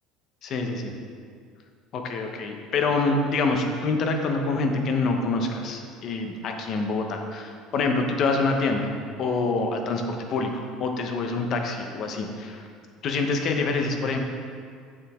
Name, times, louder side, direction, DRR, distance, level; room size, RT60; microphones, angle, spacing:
voice 1, 0.4-0.9 1.9-8.9 9.2-12.6 13.0-14.2, left 3 dB, 40° left, 4 dB, 0.9 m, -26 dB
8.3 x 7.3 x 3.6 m, 2.1 s
cardioid pair, 160°, 0 cm